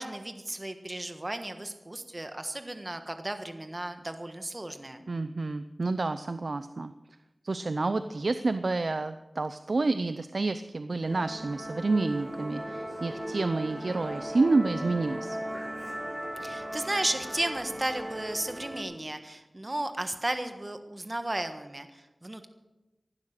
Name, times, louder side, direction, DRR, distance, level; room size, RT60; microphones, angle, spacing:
voice 1, 0.0-5.0 16.4-22.5, right 1 dB, 35° right, 8 dB, 1.4 m, -34 dB
voice 2, 5.1-6.9 7.4-15.4, right 3 dB, 70° right, 11 dB, 0.6 m, -29 dB
Musical instrument, 11.0-18.8, equal, 5° right, 5.4 m, -38 dB
16.0 x 11.5 x 6.6 m, 1.0 s
wide cardioid pair, 55°, 0 cm